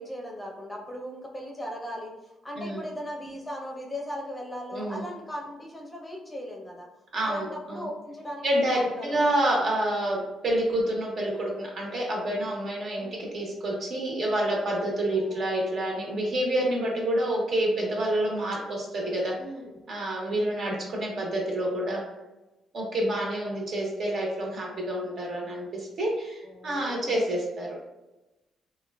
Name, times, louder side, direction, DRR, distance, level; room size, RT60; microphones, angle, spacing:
voice 1, 0.0-2.1 2.4-6.9 7.2-9.2 13.0-13.2 15.0-15.5 19.4-19.8 26.4-27.2, equal, 10° left, -1 dB, 0.6 m, -38 dB
voice 2, 4.7-5.0 7.1-7.9 8.4-13.1 13.3-19.3 19.9-22.0 22.7-27.7, right 1 dB, 60° right, -2 dB, 0.8 m, -28 dB
3.0 x 2.2 x 2.2 m, 1.0 s
cardioid pair, 90°, 0 cm